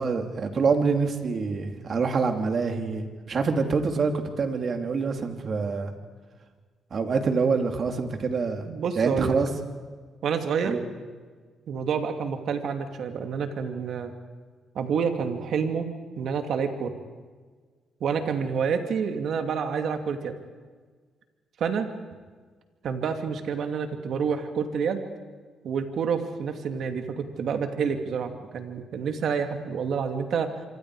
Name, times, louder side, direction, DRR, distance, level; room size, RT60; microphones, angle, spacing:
voice 1, 0.0-5.9 6.9-8.7 9.0-9.5 10.7-10.8, right 4 dB, 50° right, 5 dB, 2.8 m, -26 dB
voice 2, 8.7-9.4 10.2-10.8 11.7-14.1 14.7-15.9 16.1-16.9 18.0-20.4 21.6-21.9 22.8-25.0 25.6-30.5, right 6 dB, 65° right, 6 dB, 2.5 m, -28 dB
26.5 x 24.5 x 4.9 m, 1.5 s
cardioid pair, 90°, 0 cm